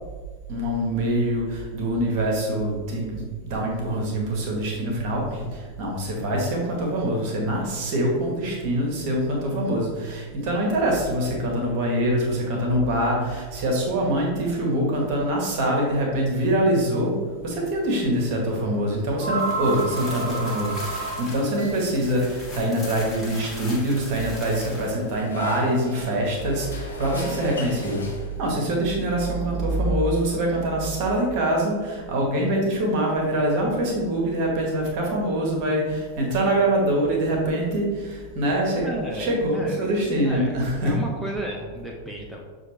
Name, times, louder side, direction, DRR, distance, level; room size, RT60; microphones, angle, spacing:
voice 1, 0.5-38.9 39.1-41.0, right 1 dB, 45° right, -1 dB, 1.1 m, -24 dB
sound 1, 16.8-17.1 17.4-17.5 18.6-18.7 19.0-24.2, right 2 dB, 60° right, 1.0 m, -33 dB
sound 2, 19.4-25.2, left 1 dB, 15° left, 1.3 m, -40 dB
sound 3, 24.8-28.7, left 2 dB, 70° left, 0.8 m, -38 dB
voice 2, 38.8-39.9 40.2-42.4, right 1 dB, ahead, -2 dB, 0.5 m, -33 dB
6.3 x 2.5 x 3.0 m, 1.4 s
figure-of-eight pair, 90°, 0 cm